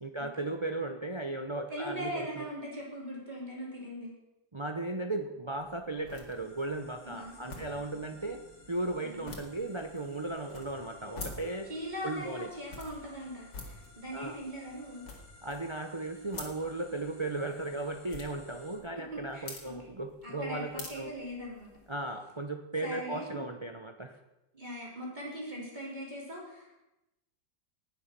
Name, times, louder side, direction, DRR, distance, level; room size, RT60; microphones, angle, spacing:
voice 1, 0.0-2.4 4.5-8.4 8.7-11.7 12.0-12.5 14.1-14.4 15.4-21.1 21.9-24.2, right 2 dB, 40° right, 5 dB, 0.4 m, -36 dB
voice 2, 1.7-4.1 7.0-8.0 9.0-9.2 11.7-15.0 19.0-19.9 20.2-21.7 22.8-23.4 24.5-26.7, equal, 20° right, -4 dB, 3.6 m, -40 dB
sound 1, 5.5-22.0, left 3 dB, 65° left, 2.9 m, -49 dB
sound 2, 6.3-18.8, left 2 dB, 40° left, 4.2 m, -57 dB
19.0 x 7.2 x 6.0 m, 0.94 s
omnidirectional pair, 2.0 m